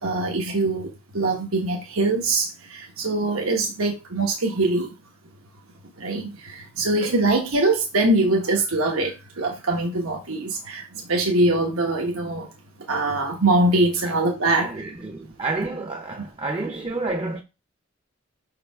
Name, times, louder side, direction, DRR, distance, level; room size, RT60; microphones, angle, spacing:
voice 1, 0.0-4.9 6.0-12.5 12.9-14.7, right 2 dB, 85° right, 1.2 m, -23 dB
voice 2, 14.5-17.4, right 3 dB, 25° right, 0.5 m, -30 dB
5.9 x 4.9 x 3.5 m
head